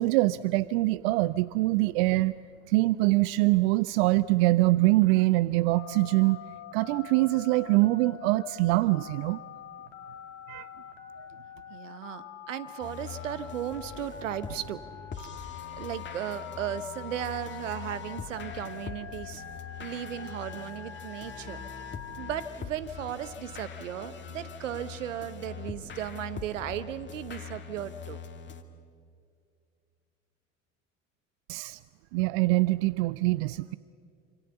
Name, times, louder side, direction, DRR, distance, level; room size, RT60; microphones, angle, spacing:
voice 1, 0.0-2.4 2.7-6.4 6.7-9.4 10.5-10.7 31.5-31.8 32.1-33.8, right 20 dB, 55° right, 18 dB, 0.6 m, -24 dB
Telephone, 5.7-22.5, left 10 dB, 65° left, 2.4 m, -45 dB
voice 2, 11.7-14.8 15.2-19.4 19.8-21.6 22.2-28.2, right 10 dB, 70° right, 14 dB, 1.2 m, -36 dB
sound 1, 12.8-28.6, left 6 dB, 30° left, 2.3 m, -43 dB
27.0 x 27.0 x 7.0 m, 2.3 s
figure-of-eight pair, 65°, 39 cm